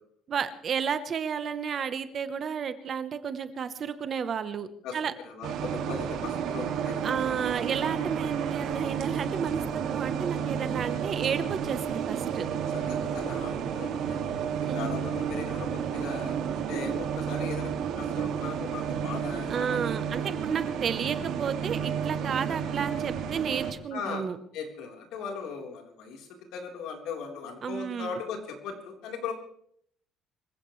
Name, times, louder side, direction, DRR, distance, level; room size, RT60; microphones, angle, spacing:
voice 1, 0.3-4.7 4.9-5.1 7.0-12.5 14.6-14.9 19.5-24.4 27.6-28.2, right 7 dB, 30° right, 11 dB, 0.9 m, -32 dB
voice 2, 4.8-7.2 12.7-16.4 16.7-20.2 23.9-24.3 24.5-29.3, left 5 dB, 65° left, 1 dB, 3.9 m, -39 dB
sound 1, 5.4-23.7, right 8 dB, 55° right, 2.2 m, -31 dB
25.5 x 15.5 x 3.2 m, 0.67 s
cardioid pair, 175°, 0 cm